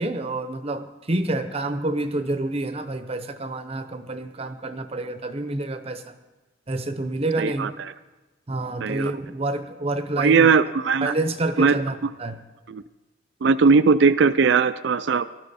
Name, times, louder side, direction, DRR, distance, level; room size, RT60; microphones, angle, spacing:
voice 1, 0.0-6.2 6.7-7.7 8.5-10.5 11.0-12.4, right 2 dB, 30° right, 9 dB, 0.7 m, -28 dB
voice 2, 7.4-7.9 8.8-9.1 10.2-11.1 11.6-11.8 12.7-12.8 13.4-15.3, right 5 dB, 55° right, 14 dB, 0.4 m, -19 dB
19.0 x 13.0 x 4.2 m, 1.2 s
head